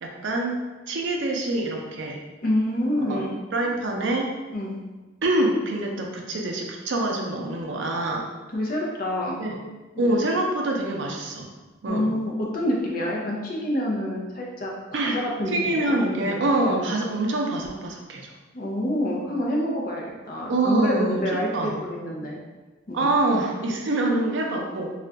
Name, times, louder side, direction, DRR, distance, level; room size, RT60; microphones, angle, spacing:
voice 1, 0.0-2.2 3.1-3.2 3.5-4.3 5.2-8.3 9.4-9.6 10.0-11.5 11.8-12.1 14.9-18.3 20.5-21.2 21.5-21.8 22.9-24.9, right 2 dB, 70° right, 1 dB, 0.5 m, -25 dB
voice 2, 2.4-3.3 4.5-4.8 8.5-9.4 10.0-10.2 11.9-16.0 16.2-16.4 18.5-22.4 22.9-23.1, left 1 dB, 45° left, -2 dB, 0.5 m, -27 dB
2.4 x 2.2 x 3.7 m, 1.2 s
head